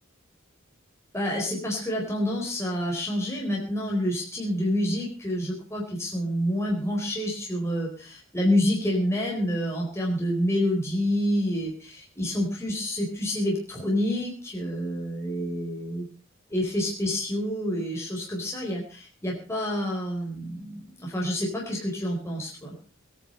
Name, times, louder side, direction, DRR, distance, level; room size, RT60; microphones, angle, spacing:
voice 1, 1.1-16.1 16.5-22.7, equal, 15° left, -2 dB, 4.4 m, -28 dB
21.5 x 10.0 x 5.3 m, 0.37 s
head